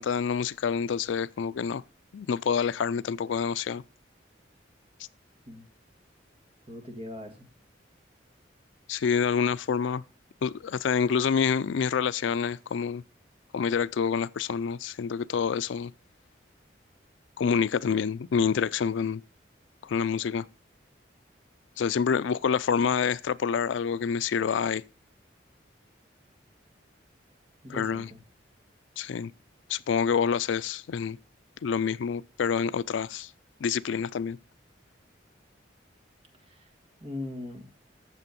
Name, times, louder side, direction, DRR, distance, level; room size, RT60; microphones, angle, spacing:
voice 1, 0.0-1.8 2.1-3.8 8.9-10.0 10.4-13.0 13.5-15.9 17.4-19.2 19.8-20.5 21.8-24.8 27.7-28.1 29.0-29.3 29.7-31.2 31.6-33.3 33.6-34.4, left 6 dB, 80° left, 0.4 m, -27 dB
voice 2, 6.7-7.5 27.6-28.2 36.4-36.7 37.0-37.7, left 2 dB, 30° right, 1.8 m, -40 dB
8.3 x 6.9 x 5.2 m
head